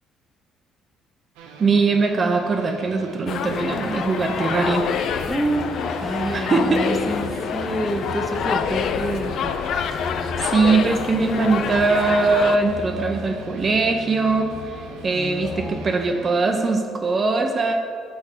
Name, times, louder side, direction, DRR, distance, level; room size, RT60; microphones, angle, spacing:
sound 1, 1.4-16.7, right 5 dB, 85° right, 0.5 m, -41 dB
voice 1, 1.6-4.9 6.3-6.9 10.4-17.7, right 3 dB, 40° right, 4 dB, 0.6 m, -21 dB
sound 2, 3.3-12.6, left 7 dB, 65° left, 0.3 m, -27 dB
sound 3, 5.1-15.9, left 2 dB, 35° left, 0.8 m, -38 dB
voice 2, 5.2-9.5 15.1-15.8, right 1 dB, 5° right, 3 dB, 0.7 m, -28 dB
5.8 x 4.3 x 4.5 m, 2.1 s
supercardioid pair, 65°, 0 cm